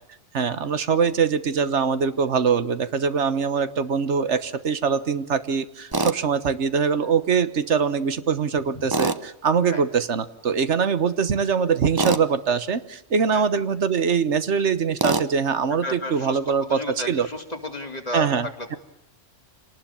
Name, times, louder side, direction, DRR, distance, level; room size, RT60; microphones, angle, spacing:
voice 1, 0.3-17.3 18.1-18.8, right 6 dB, 70° right, 12 dB, 1.5 m, -23 dB
Tools, 5.9-6.2 8.9-9.2 12.0-12.3 15.0-15.3, right 3 dB, 20° right, 0.9 m, -23 dB
voice 2, 15.8-18.3, left 1 dB, 35° left, 4 dB, 2.9 m, -33 dB
27.0 x 19.5 x 7.1 m, 0.81 s
omnidirectional pair, 1.3 m